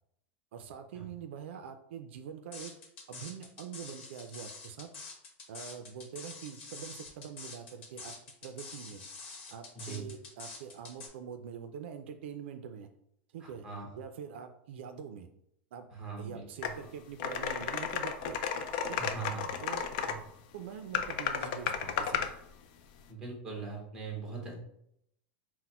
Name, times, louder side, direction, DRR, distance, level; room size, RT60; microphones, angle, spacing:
voice 1, 0.5-2.7 3.1-4.9 5.5-8.1 8.4-9.0 9.5-12.9 13.3-13.7 13.9-15.3 15.7-15.9 16.2-18.4 18.9-19.1 19.6-19.9 20.5-22.3, right 7 dB, 70° right, 7 dB, 0.4 m, -44 dB
sound 1, 2.5-11.1, left 4 dB, 65° left, 1.0 m, -46 dB
voice 2, 9.7-10.1 13.4-13.9 15.9-16.4 19.0-19.4 20.0-20.1 23.1-24.6, right 5 dB, 10° right, -1 dB, 1.0 m, -40 dB
sound 2, 16.6-16.7 17.2-20.2 20.9-22.3, left 7 dB, 45° left, 0.4 m, -33 dB
4.1 x 2.1 x 4.2 m, 0.73 s
supercardioid pair, 175°, 6 cm